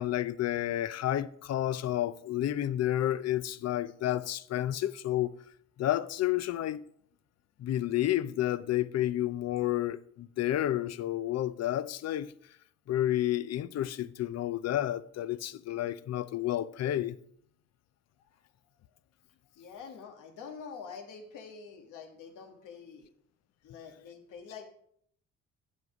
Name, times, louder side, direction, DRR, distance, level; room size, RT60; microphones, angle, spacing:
voice 1, 0.0-5.3 5.8-6.8 7.6-12.3 12.9-17.2, left 13 dB, 60° left, 0.5 m, -30 dB
voice 2, 19.6-23.1 23.6-24.6, left 6 dB, 85° left, 1.6 m, -46 dB
9.6 x 7.5 x 4.9 m
cardioid pair, 90°, 30 cm